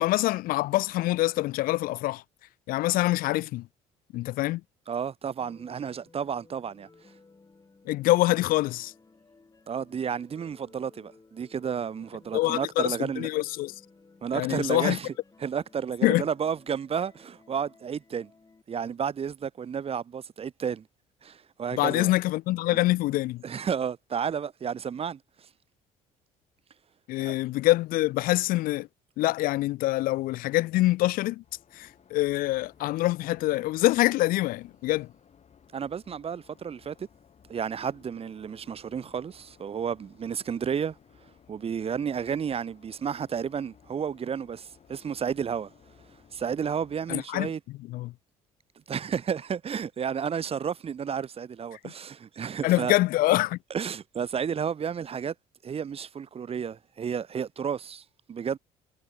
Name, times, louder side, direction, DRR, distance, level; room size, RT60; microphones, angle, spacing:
voice 1, 0.0-2.2 2.7-3.7 4.1-4.6 7.9-8.9 12.3-13.7 14.3-15.0 16.0-16.2 21.7-23.4 27.1-28.9 29.2-31.4 31.7-35.1 47.1-47.5 47.9-48.1 51.8-51.9 52.6-53.6, left 17 dB, 70° left, 0.5 m, -25 dB
voice 2, 4.9-6.9 9.7-13.3 14.2-15.1 15.4-18.3 18.7-20.9 21.2-22.1 22.7-22.8 23.4-25.2 27.2-27.4 35.7-37.1 37.5-41.0 41.5-45.7 46.3-47.6 48.9-52.9 53.7-55.3 55.6-58.6, right 7 dB, 40° right, 1.0 m, -32 dB
The Fall of Icarus, 5.4-18.6, left 3 dB, 25° left, 3.2 m, -58 dB
sound 1, 31.4-47.2, left 7 dB, 45° left, 7.5 m, -59 dB
supercardioid pair, 70°, 15 cm